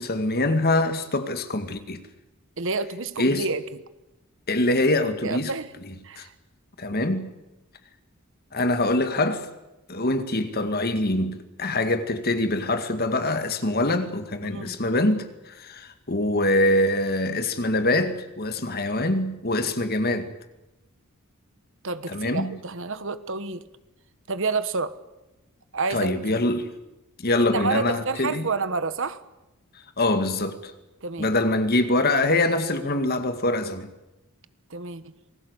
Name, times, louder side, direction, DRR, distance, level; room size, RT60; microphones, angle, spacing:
voice 1, 0.0-2.0 3.2-3.5 4.5-5.5 6.2-6.3 6.8-7.3 8.5-9.5 9.9-20.3 22.1-22.6 25.9-26.7 27.2-28.5 30.0-30.7 31.2-33.9, left 2 dB, 45° left, 2.1 m, -24 dB
voice 2, 2.6-3.6 5.2-5.7 6.0-6.3 6.9-7.0 14.4-14.8 21.8-23.6 24.3-24.9 25.7-26.4 27.4-29.2 31.0-31.3 34.7-35.1, right 3 dB, 60° right, 1.3 m, -29 dB
27.5 x 20.0 x 8.2 m
head